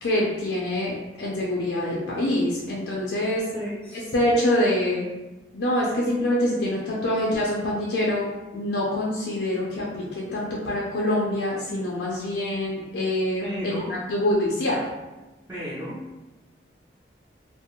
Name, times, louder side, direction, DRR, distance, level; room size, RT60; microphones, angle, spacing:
voice 1, 0.0-3.4 4.1-5.1 5.5-8.3 8.5-13.8 14.1-14.8, left 1 dB, 85° left, -5 dB, 0.5 m, -25 dB
voice 2, 3.5-4.1 13.4-13.9 15.5-16.0, equal, 10° right, -11 dB, 0.5 m, -33 dB
2.5 x 2.0 x 2.8 m, 1.1 s
head